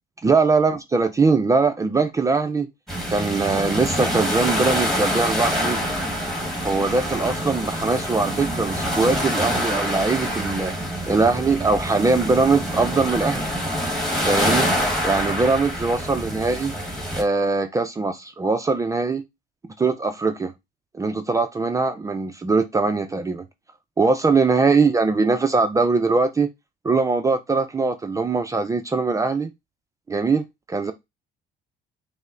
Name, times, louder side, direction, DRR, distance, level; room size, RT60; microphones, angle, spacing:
voice 1, 0.2-2.7 3.1-5.8 6.6-10.7 11.1-13.4 14.2-14.7 15.0-16.7 17.1-19.2 19.8-20.5 20.9-23.4 24.0-26.5 26.8-29.5 30.1-30.9, right 4 dB, 20° right, 0.4 m, -21 dB
sound 1, 2.9-17.2, equal, ahead, 1.4 m, -26 dB
5.3 x 2.1 x 3.7 m
cardioid pair, 110°, 17 cm